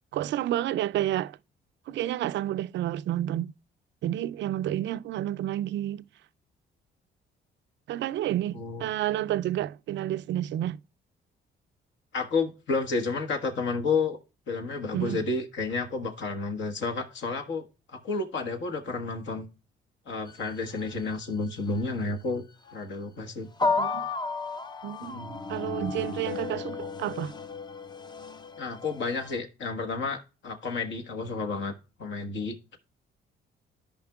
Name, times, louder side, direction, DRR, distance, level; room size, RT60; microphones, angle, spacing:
voice 1, 0.1-1.4 1.9-3.5 4.0-6.0 7.9-10.8 14.9-15.2 23.8-24.1 24.8-27.3, right 12 dB, 65° right, 0.4 m, -30 dB
voice 2, 12.1-14.2 14.5-17.6 17.9-19.5 20.1-22.4 22.7-23.5 25.0-25.3 28.6-31.7 32.0-32.8, left 4 dB, 70° left, 1.4 m, -31 dB
sound 1, 20.3-21.3 21.7-21.8 22.7-22.8 23.6-29.4, left 4 dB, 20° left, 0.5 m, -33 dB
14.0 x 5.1 x 2.3 m
cardioid pair, 90°, 20 cm